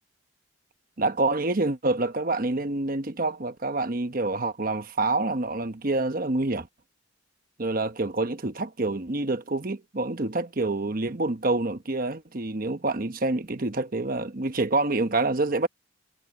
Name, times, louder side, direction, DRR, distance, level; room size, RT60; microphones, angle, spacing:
voice 1, 1.0-6.7 7.6-15.7, right 2 dB, 45° right, 1.0 m, -27 dB
head